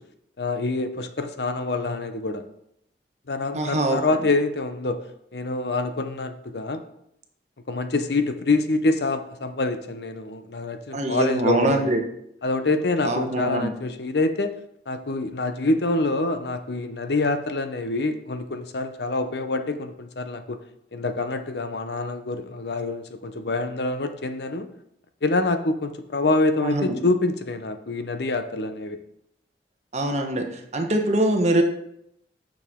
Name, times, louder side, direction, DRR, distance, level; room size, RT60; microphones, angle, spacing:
voice 1, 0.4-2.4 3.3-5.0 5.3-6.8 7.7-12.0 12.4-14.5 14.9-20.6 20.9-24.7 25.2-29.0, left 2 dB, 70° left, 8 dB, 0.7 m, -26 dB
voice 2, 3.5-4.0 10.9-12.0 13.0-13.7 26.6-27.0 29.9-30.4 30.7-31.6, right 1 dB, 40° right, 3 dB, 1.1 m, -23 dB
8.5 x 6.4 x 3.7 m, 0.75 s
head